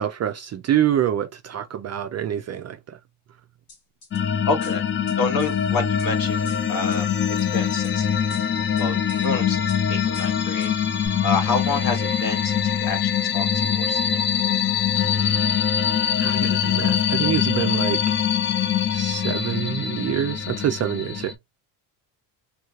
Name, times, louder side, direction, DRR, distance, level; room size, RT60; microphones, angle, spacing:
voice 1, 0.0-3.0 16.0-18.2 18.9-21.3, right 10 dB, 40° right, 0.4 m, -26 dB
sound 1, 3.7-4.2 4.6-6.1 6.5-7.0 7.4-8.0 8.3-9.3 9.7-9.8 10.1-10.7 11.1-11.2, left 4 dB, 75° left, 2.0 m, -46 dB
sound 2, 4.1-21.3, left 8 dB, 30° left, 0.4 m, -23 dB
voice 2, 4.5-7.1 7.5-8.1 8.7-10.7 11.2-14.2, left 3 dB, 45° left, 1.4 m, -28 dB
3.2 x 3.1 x 2.4 m
cardioid pair, 125°, 45 cm